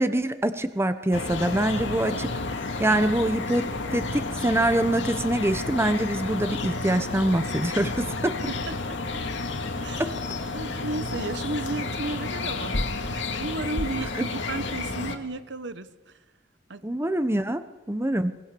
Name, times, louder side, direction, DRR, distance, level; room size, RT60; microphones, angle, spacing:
voice 1, 0.0-2.4 2.8-8.4 10.0-10.1 14.1-14.2 16.8-17.6 17.9-18.3, right 1 dB, 15° right, 11 dB, 0.9 m, -25 dB
sound 1, 1.1-15.2, left 3 dB, 80° left, 2.0 m, -31 dB
voice 2, 8.5-9.0 9.8-10.2 10.5-16.2 16.7-16.8, right 2 dB, 70° right, 13 dB, 1.0 m, -34 dB
24.0 x 20.5 x 7.0 m, 1.2 s
head